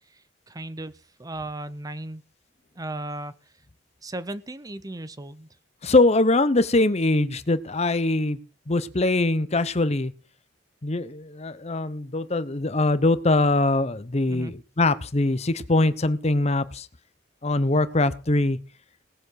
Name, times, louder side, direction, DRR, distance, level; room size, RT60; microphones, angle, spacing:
voice 1, 0.5-0.9 1.2-2.2 2.8-3.3 4.0-5.5 14.3-14.5, right 1 dB, 20° right, 14 dB, 0.7 m, -35 dB
voice 2, 5.8-8.4 8.7-10.1 10.8-16.9 17.4-18.6, left 2 dB, 35° left, 14 dB, 0.9 m, -22 dB
18.5 x 7.3 x 6.4 m, 0.38 s
head